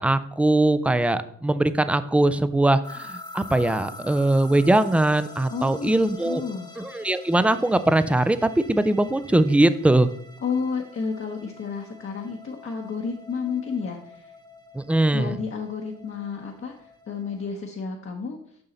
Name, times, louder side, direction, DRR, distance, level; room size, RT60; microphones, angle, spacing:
voice 1, 0.0-6.4 6.8-10.1 14.7-15.4, right 1 dB, 5° right, 13 dB, 0.3 m, -21 dB
sound 1, 2.8-17.5, left 3 dB, 10° left, 1.1 m, -46 dB
voice 2, 5.5-6.7 10.4-14.3 15.1-18.4, left 5 dB, 40° left, 1 dB, 0.9 m, -31 dB
7.1 x 5.5 x 3.9 m, 0.66 s
cardioid pair, 95°, 32 cm